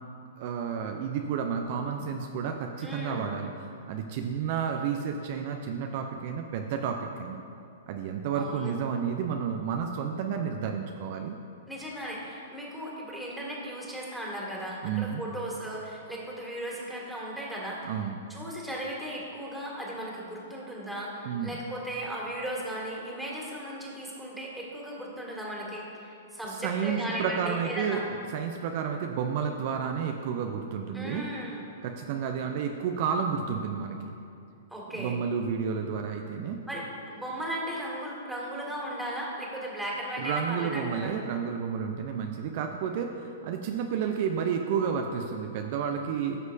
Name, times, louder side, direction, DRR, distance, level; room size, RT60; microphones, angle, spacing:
voice 1, 0.4-7.4 7.9-11.4 14.8-15.2 17.8-18.2 21.2-21.5 26.5-28.0 28.3-31.3 31.8-34.0 34.9-36.6 40.2-46.4, right 7 dB, 50° right, 3 dB, 0.5 m, -31 dB
voice 2, 2.8-3.3 8.3-8.7 11.7-17.9 18.3-28.0 30.9-31.7 34.7-35.2 36.7-41.1, right 1 dB, 5° right, -5 dB, 2.1 m, -36 dB
14.5 x 6.2 x 2.7 m, 2.6 s
hypercardioid pair, 115°, 0 cm